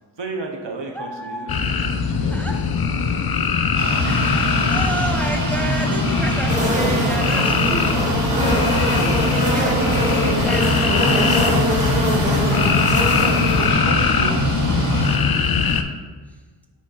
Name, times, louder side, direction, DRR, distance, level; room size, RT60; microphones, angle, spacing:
voice 1, 0.2-2.6 9.4-9.8 10.1-10.2 13.0-14.4 14.8-14.9, right 3 dB, 80° right, 1 dB, 0.9 m, -33 dB
voice 2, 0.9-1.8 2.3-2.6 4.0-8.2 8.6-11.4 11.6-11.9 12.3-12.6, right 1 dB, 5° left, 1 dB, 0.7 m, -31 dB
sound 1, 1.5-15.8, left 6 dB, 60° left, 0.5 m, -21 dB
sound 2, 3.8-15.2, right 2 dB, 45° right, 1.1 m, -25 dB
sound 3, 6.5-13.7, equal, 15° right, 1.6 m, -23 dB
10.0 x 4.1 x 2.4 m, 1.4 s
wide cardioid pair, 70°, 42 cm